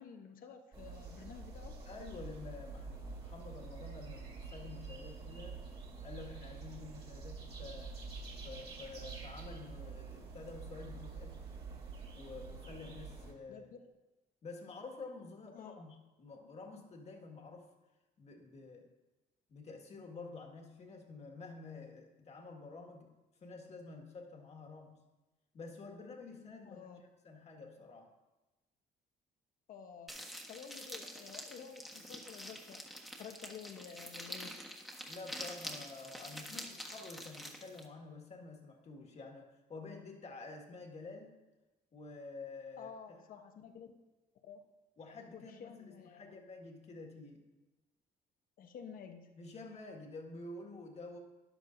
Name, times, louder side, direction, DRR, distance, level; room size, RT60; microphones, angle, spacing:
voice 1, 0.0-1.7 13.5-13.8 15.5-15.8 26.6-27.0 29.7-30.2 30.5-34.6 42.8-43.9 44.4-44.6 45.3-46.3 48.6-49.3, left 7 dB, 55° left, 5 dB, 1.1 m, -51 dB
sound 1, 0.7-13.3, right 4 dB, 35° right, 2.4 m, -47 dB
voice 2, 1.9-5.6 6.0-8.0 8.4-11.4 12.2-13.7 14.4-17.7 18.2-18.9 19.5-25.0 25.5-28.1 35.1-41.3 41.9-43.2 45.0-47.5 49.4-51.2, left 3 dB, 40° left, 3 dB, 1.8 m, -49 dB
sound 2, 30.1-37.9, equal, ahead, 1.4 m, -47 dB
13.0 x 11.0 x 2.7 m, 1.1 s
cardioid pair, 110°, 17 cm